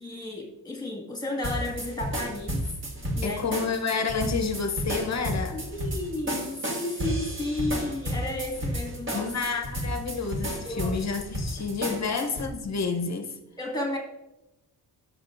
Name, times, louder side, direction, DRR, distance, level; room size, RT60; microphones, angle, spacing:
voice 1, 0.0-2.6 3.1-3.6 5.5-9.3 10.6-10.9 11.9-12.0 13.6-14.0, left 2 dB, 10° left, 2.0 m, -33 dB
sound 1, 1.4-12.5, equal, 30° right, 1.5 m, -32 dB
voice 2, 3.2-5.6 9.1-13.4, left 5 dB, 40° left, 0.9 m, -29 dB
16.5 x 6.5 x 2.6 m
wide cardioid pair, 160°, 41 cm